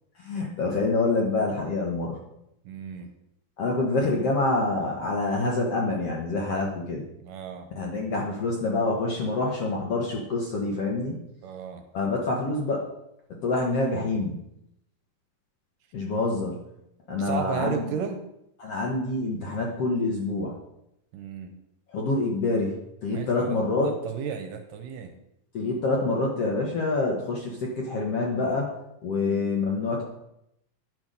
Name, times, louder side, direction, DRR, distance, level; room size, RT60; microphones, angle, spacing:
voice 1, 0.2-2.2 3.6-7.1 7.7-11.2 11.9-12.8 13.4-14.4 15.9-16.7 17.1-17.8 18.6-20.6 21.9-22.7 23.0-23.9 25.5-28.7 29.0-30.0, left 3 dB, 60° left, -1 dB, 1.7 m, -26 dB
voice 2, 2.6-3.1 7.2-7.7 11.4-11.8 17.1-18.2 21.1-21.5 23.1-25.1 29.2-29.4, right 7 dB, 75° right, 6 dB, 2.3 m, -34 dB
10.5 x 6.2 x 5.2 m, 0.82 s
omnidirectional pair, 4.2 m